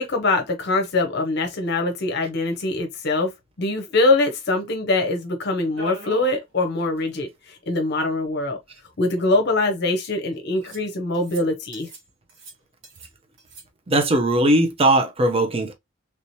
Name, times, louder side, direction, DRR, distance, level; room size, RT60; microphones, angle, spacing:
voice 1, 0.0-3.3 3.6-8.6 9.0-11.9, left 2 dB, 55° left, 0.6 m, -23 dB
sound 1, 5.8-6.4 6.8-6.9 7.1-7.2 8.2-8.3 9.1-9.7 10.6-10.9 11.1-11.4 11.7-12.0 12.3-13.1 13.4-13.6, right 2 dB, 65° right, 1.2 m, -40 dB
voice 2, 13.9-15.7, right 1 dB, 30° right, 0.6 m, -19 dB
3.3 x 2.8 x 3.0 m
head